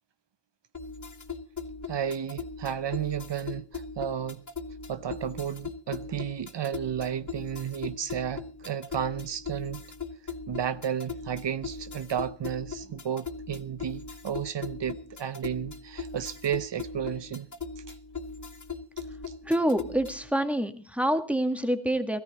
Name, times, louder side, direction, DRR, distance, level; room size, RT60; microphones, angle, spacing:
sound 1, 0.7-20.3, left 4 dB, 45° left, 1.1 m, -40 dB
voice 1, 1.9-4.4 4.9-9.8 10.5-17.5 17.9-18.0, right 9 dB, 80° right, 0.7 m, -32 dB
voice 2, 19.5-22.2, right 1 dB, 5° right, 1.8 m, -26 dB
18.0 x 13.5 x 4.1 m
wide cardioid pair, 55°, 42 cm